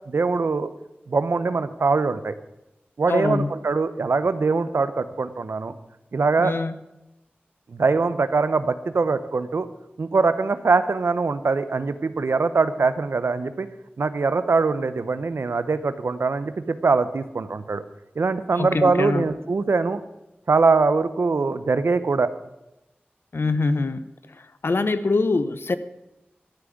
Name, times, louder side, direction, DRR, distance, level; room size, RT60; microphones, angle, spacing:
voice 1, 0.1-0.7 1.1-2.3 3.0-5.7 6.1-6.5 7.7-9.7 10.0-13.7 14.0-17.8 18.2-20.0 20.5-22.3, right 4 dB, 85° right, 12 dB, 0.8 m, -22 dB
voice 2, 3.1-3.5 6.4-6.7 18.6-19.3 23.3-24.0 24.6-25.8, left 3 dB, 70° left, 13 dB, 0.8 m, -23 dB
13.0 x 6.2 x 9.2 m, 0.94 s
wide cardioid pair, 55°, 4 cm